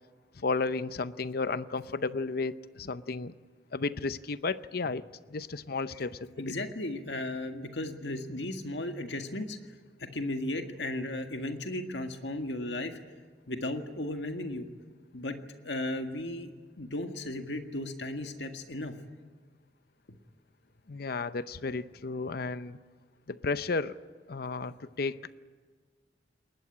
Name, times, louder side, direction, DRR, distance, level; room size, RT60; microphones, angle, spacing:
voice 1, 0.4-3.3 3.7-5.0 5.3-6.5 20.9-22.8 23.3-24.0 24.3-25.2, left 3 dB, 60° left, 14 dB, 0.7 m, -33 dB
voice 2, 6.4-9.6 10.0-13.0 13.5-14.7 15.1-15.4 15.6-16.5 16.8-18.9, left 1 dB, 75° left, 6 dB, 1.8 m, -35 dB
21.5 x 19.5 x 9.9 m, 1.5 s
head